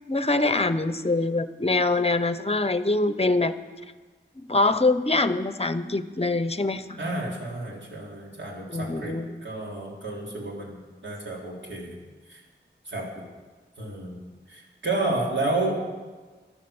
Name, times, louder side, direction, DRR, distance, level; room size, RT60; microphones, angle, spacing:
voice 1, 0.1-3.6 4.4-7.0 8.7-9.4, left 2 dB, 30° left, 12 dB, 0.8 m, -24 dB
voice 2, 7.0-9.2 9.4-12.0 12.3-12.4 12.9-13.0 13.8-14.2 14.5-15.8, right 2 dB, 70° right, -3 dB, 3.7 m, -31 dB
12.5 x 11.5 x 7.2 m, 1.4 s
wide cardioid pair, 60°, 20 cm